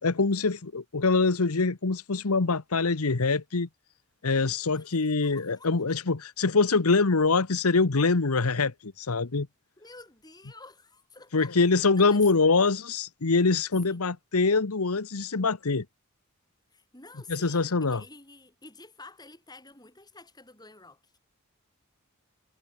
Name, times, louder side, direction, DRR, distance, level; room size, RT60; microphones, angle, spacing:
voice 1, 0.0-3.7 4.2-9.5 11.3-15.8 17.3-18.0, left 4 dB, 85° left, 1.1 m, -24 dB
voice 2, 5.2-5.9 9.8-11.6 11.9-12.2 13.8-14.0 16.7-21.0, left 3 dB, 20° left, 5.2 m, -50 dB
head